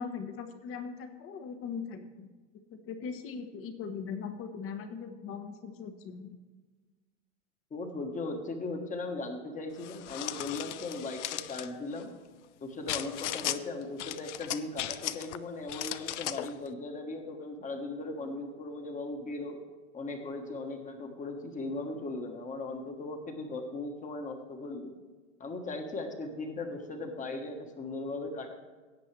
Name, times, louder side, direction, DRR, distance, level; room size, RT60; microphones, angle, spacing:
voice 1, 0.0-2.3 2.7-6.4, left 6 dB, 35° left, 8 dB, 1.2 m, -40 dB
voice 2, 7.7-12.1 12.6-19.6 19.9-24.9 25.4-28.5, left 2 dB, 20° left, 5 dB, 1.4 m, -38 dB
sound 1, 9.8-11.7 12.9-13.6 14.0-15.4 15.7-16.5, left 13 dB, 75° left, 0.6 m, -36 dB
17.0 x 7.7 x 3.3 m, 1.4 s
hypercardioid pair, 110°, 36 cm